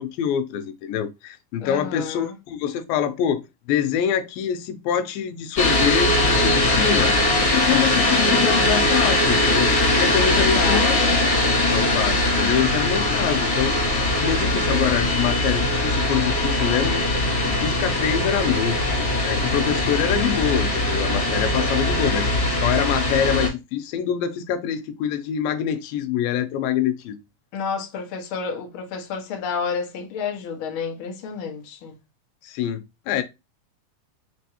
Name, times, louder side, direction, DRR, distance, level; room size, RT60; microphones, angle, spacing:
voice 1, 0.0-3.4 3.7-7.2 7.4-11.0 11.7-17.0 17.4-27.2 32.4-33.2, left 9 dB, 85° left, 2.4 m, -25 dB
voice 2, 1.6-2.3 10.3-11.2 27.5-31.9, left 5 dB, 55° left, 1.4 m, -30 dB
sound 1, 5.6-23.5, left 1 dB, 30° left, 2.3 m, -21 dB
5.4 x 3.4 x 2.8 m
omnidirectional pair, 4.0 m